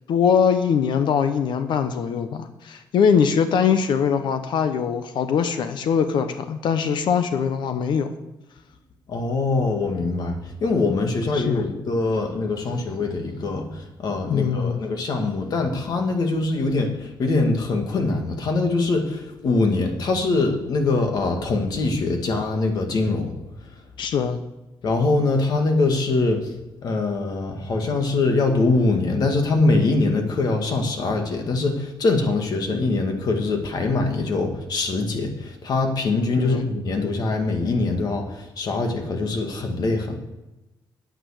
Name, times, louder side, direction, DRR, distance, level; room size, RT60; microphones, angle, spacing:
voice 1, 0.1-8.1 11.3-11.6 14.3-14.8 24.0-24.4 36.4-36.6, left 7 dB, 75° left, 9 dB, 0.9 m, -22 dB
voice 2, 9.1-23.4 24.8-26.5 26.8-40.2, left 3 dB, 55° left, 4 dB, 2.0 m, -23 dB
9.3 x 9.2 x 6.5 m, 1.0 s
cardioid pair, 145°, 8 cm